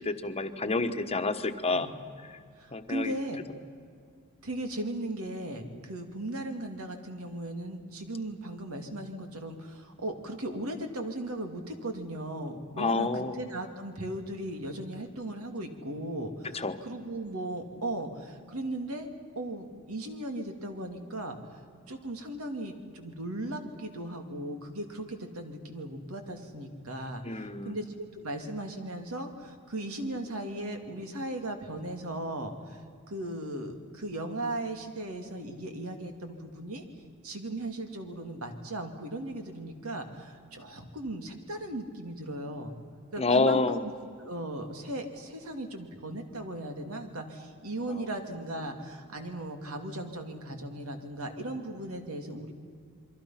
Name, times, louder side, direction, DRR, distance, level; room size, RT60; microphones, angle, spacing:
voice 1, 0.0-1.9 2.3-2.4 2.7-3.1 12.8-13.4 16.5-16.8 27.2-27.8 43.2-43.8, left 3 dB, 30° left, 9 dB, 1.2 m, -28 dB
voice 2, 2.6-3.4 4.4-19.1 19.3-21.6 21.9-32.8 33.1-36.8 37.2-42.7 43.1-43.6 44.2-52.5, right 1 dB, 80° right, 5 dB, 2.7 m, -37 dB
28.5 x 23.0 x 5.9 m, 2.2 s
head